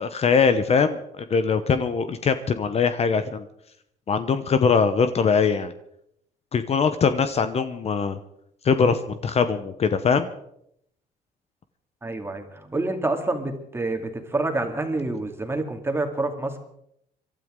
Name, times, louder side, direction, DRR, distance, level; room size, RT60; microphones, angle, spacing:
voice 1, 0.0-3.5 4.1-5.7 6.5-8.2 8.6-10.3, left 5 dB, 40° left, 10 dB, 0.9 m, -22 dB
voice 2, 12.0-16.6, right 2 dB, 15° right, 5 dB, 2.3 m, -27 dB
26.5 x 12.5 x 3.8 m, 0.74 s
cardioid pair, 110°, 17 cm